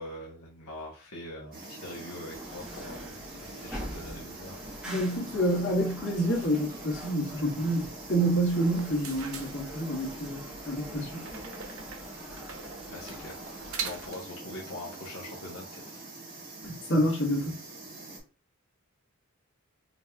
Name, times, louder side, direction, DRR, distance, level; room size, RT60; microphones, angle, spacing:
voice 1, 0.0-4.6 12.9-13.4 13.8-16.0, left 1 dB, 80° left, 1.0 m, -43 dB
sound 1, 1.5-18.2, right 2 dB, 45° right, 1.8 m, -45 dB
sound 2, 2.3-14.1, equal, 5° right, 1.2 m, -45 dB
voice 2, 4.8-11.3 16.6-17.5, right 1 dB, 55° left, 1.7 m, -28 dB
sound 3, 8.7-10.2 11.2-14.4, right 6 dB, 70° right, 0.7 m, -42 dB
4.0 x 3.4 x 2.3 m
head